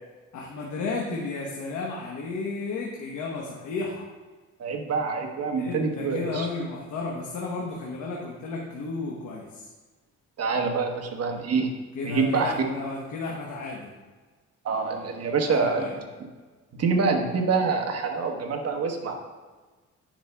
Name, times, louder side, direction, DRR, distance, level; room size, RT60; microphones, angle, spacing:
voice 1, 0.3-4.1 5.6-9.7 11.9-13.9 15.4-15.9, left 3 dB, 75° left, -2 dB, 1.1 m, -33 dB
voice 2, 4.6-6.5 10.4-11.7 12.0-12.5 14.6-15.9 16.7-19.2, right 4 dB, 55° right, 3 dB, 1.1 m, -26 dB
10.0 x 5.4 x 2.3 m, 1.3 s
cardioid pair, 90°, 30 cm